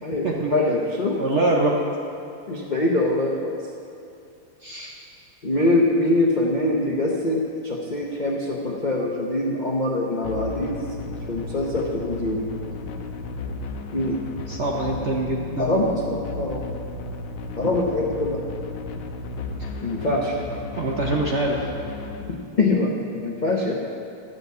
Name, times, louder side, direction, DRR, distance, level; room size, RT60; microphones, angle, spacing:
voice 1, 0.0-1.2 2.5-3.6 5.4-12.5 13.9-14.2 15.6-16.7 17.6-18.4 19.8-20.3 22.3-23.7, left 2 dB, 55° left, -3 dB, 0.5 m, -24 dB
voice 2, 1.1-1.7 4.6-4.9 14.5-15.9 20.8-21.6, right 2 dB, 50° right, -2 dB, 0.8 m, -24 dB
sound 1, 10.2-22.2, left 3 dB, 85° left, 1.6 m, -34 dB
12.0 x 5.0 x 8.1 m, 2.6 s
omnidirectional pair, 2.2 m